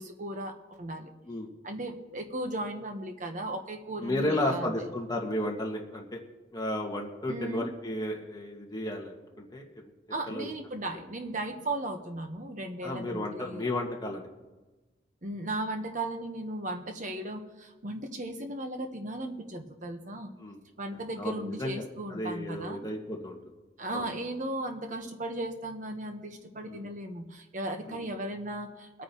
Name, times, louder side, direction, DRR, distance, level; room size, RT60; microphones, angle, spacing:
voice 1, 0.0-1.1 1.6-4.7 7.3-7.7 10.1-13.6 15.2-20.3 20.8-22.8 23.8-29.0, right 1 dB, 45° right, 5 dB, 1.1 m, -36 dB
voice 2, 4.0-6.2 6.5-9.8 10.3-10.5 12.8-14.3 20.4-20.6 21.2-21.8 22.1-23.4 23.9-24.1 26.6-26.8 27.9-28.0, left 1 dB, 25° left, 0 dB, 1.7 m, -33 dB
23.0 x 9.1 x 3.0 m, 1.2 s
head